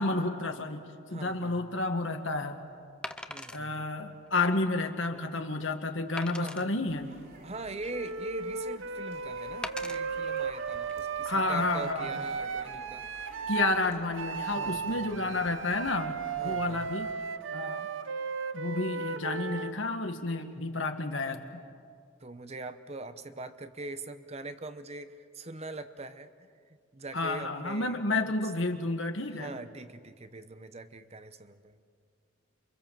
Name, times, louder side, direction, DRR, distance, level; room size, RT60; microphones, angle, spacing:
voice 1, 0.0-2.6 3.5-7.1 11.2-12.2 13.5-16.2 16.4-17.1 17.5-17.9 18.5-21.6 27.1-29.6, left 2 dB, 75° left, 6 dB, 1.9 m, -31 dB
voice 2, 1.1-1.6 3.3-3.9 6.4-6.8 7.4-13.0 14.4-15.4 16.4-16.9 22.2-26.5 26.9-28.0 29.4-31.8, right 2 dB, 35° right, 11 dB, 0.9 m, -42 dB
Wood, 1.4-1.6 3.0-3.6 4.3-4.4 4.9-5.0 6.2-6.7 7.4-8.2 9.6-10.0 10.7-10.9, left 1 dB, 5° left, 0.7 m, -40 dB
sound 1, 6.8-17.1, right 2 dB, 50° right, 4.3 m, -52 dB
Wind instrument woodwind instrument, 7.9-13.7 14.2-19.8, right 5 dB, 80° right, 0.9 m, -35 dB
28.0 x 24.0 x 7.6 m, 2.2 s
head